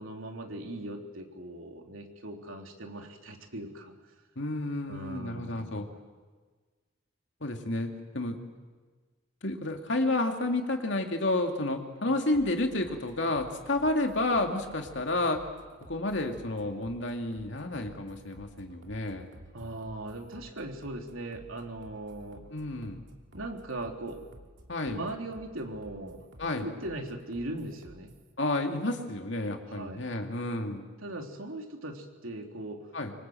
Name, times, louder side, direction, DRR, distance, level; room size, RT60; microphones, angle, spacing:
voice 1, 0.0-3.9 4.9-6.0 19.5-22.4 23.3-24.2 24.9-26.2 26.5-28.1 29.7-30.1 31.0-32.9, right 1 dB, 80° right, 3 dB, 3.4 m, -39 dB
voice 2, 4.4-5.9 7.4-8.4 9.4-15.4 15.8-19.3 22.5-23.0 24.7-25.0 26.4-26.7 28.4-30.8 32.9-33.1, left 2 dB, 60° left, 4 dB, 2.7 m, -30 dB
sound 1, 12.3-28.3, equal, 65° right, 2.8 m, -53 dB
25.5 x 25.5 x 7.8 m, 1.4 s
head